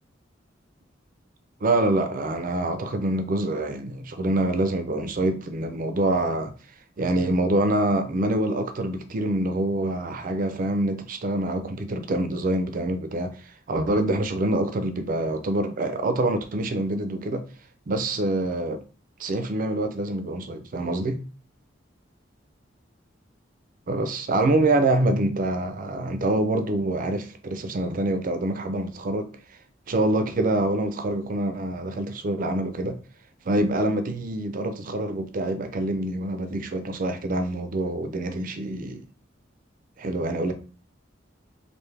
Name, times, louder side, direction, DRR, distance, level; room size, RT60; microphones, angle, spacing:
voice 1, 1.6-6.5 7.0-13.4 13.7-17.4 17.9-18.8 19.2-21.2 23.9-29.3 29.9-33.0 33.5-39.0 40.0-40.5, right 1 dB, 45° right, 0.5 m, -25 dB
3.3 x 2.6 x 3.3 m
head